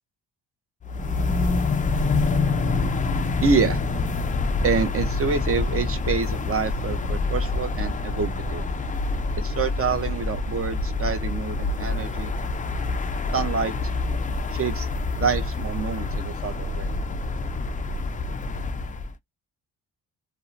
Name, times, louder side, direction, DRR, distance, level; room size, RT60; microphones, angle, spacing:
sound 1, 0.8-19.1, left 3 dB, 20° left, 0.4 m, -26 dB
voice 1, 3.4-3.8 4.6-8.6 9.4-12.3 13.3-13.7 14.5-14.9 15.2-16.9, right 5 dB, 35° right, 0.6 m, -27 dB
2.7 x 2.1 x 2.4 m
cardioid pair, 75°, 41 cm